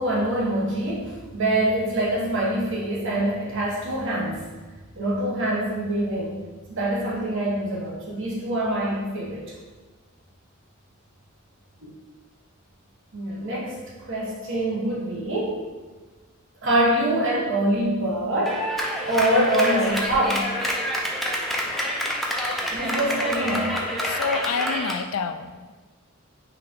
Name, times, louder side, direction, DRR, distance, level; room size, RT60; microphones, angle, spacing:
voice 1, 0.0-4.5 5.0-6.4 6.7-9.5 13.1-13.8 14.1-15.6 16.6-18.6 19.1-20.5 22.7-23.7, right 1 dB, 65° right, -5 dB, 1.2 m, -24 dB
Clapping, 18.5-25.0, equal, ahead, 0.5 m, -27 dB
voice 2, 24.0-25.8, left 6 dB, 75° left, 9 dB, 0.3 m, -29 dB
4.8 x 2.9 x 3.6 m, 1.3 s
head